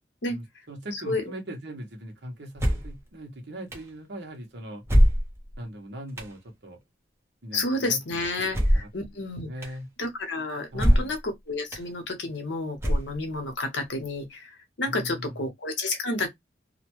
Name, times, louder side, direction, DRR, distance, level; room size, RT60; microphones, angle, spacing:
voice 1, 0.3-4.8 5.6-6.8 7.4-9.9 10.7-11.1 14.9-15.4, equal, 65° right, 1.1 m, -40 dB
voice 2, 0.9-1.2 7.5-9.5 10.0-16.3, left 2 dB, 75° left, 0.9 m, -30 dB
sound 1, 2.6-3.0 3.7-3.8 4.9-5.6 6.2-6.3 8.5-9.0 9.6-9.7 10.8-11.2 11.7-11.8 12.8-13.4, equal, 15° right, 0.7 m, -22 dB
2.8 x 2.2 x 2.9 m
head